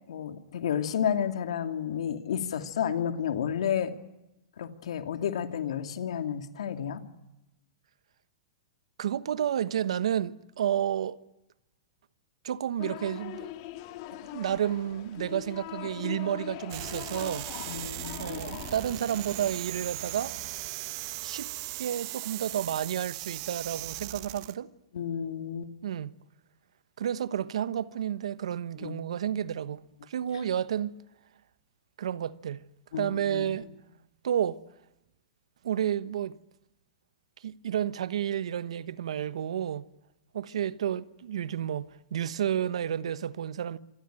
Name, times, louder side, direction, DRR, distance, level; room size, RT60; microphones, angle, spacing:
voice 1, 0.1-3.9 4.6-7.0 17.7-18.3 24.9-25.7 28.8-29.0 32.9-33.5, left 8 dB, 75° left, 2.5 m, -31 dB
voice 2, 9.0-11.2 12.4-13.5 14.1-17.5 18.2-20.3 21.2-21.5 21.8-24.7 25.8-26.2 27.0-30.9 32.0-32.7 33.0-33.7 34.2-34.6 35.6-36.4 37.4-39.9 40.3-43.8, right 10 dB, 75° right, 1.1 m, -31 dB
sound 1, 12.8-20.3, left 15 dB, 50° left, 2.2 m, -42 dB
sound 2, 16.7-24.6, right 19 dB, 50° right, 1.4 m, -38 dB
26.5 x 19.5 x 9.0 m
hypercardioid pair, 120°, 3 cm